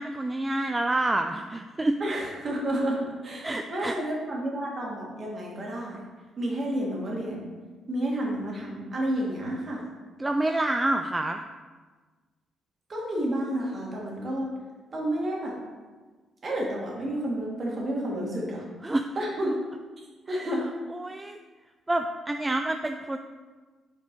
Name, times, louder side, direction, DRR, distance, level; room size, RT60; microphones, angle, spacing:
voice 1, 0.0-2.0 3.4-3.9 10.2-11.4 18.8-19.1 20.3-20.5 20.9-21.4 21.9-23.2, right 2 dB, 15° right, 5 dB, 0.3 m, -28 dB
voice 2, 2.0-6.1 6.4-7.5 7.9-9.8 12.9-14.5 14.9-15.6 16.4-18.7 19.2-19.6 20.3-20.6, right 1 dB, 40° right, -2 dB, 1.8 m, -30 dB
5.6 x 4.4 x 4.4 m, 1.3 s
cardioid pair, 90°, 0 cm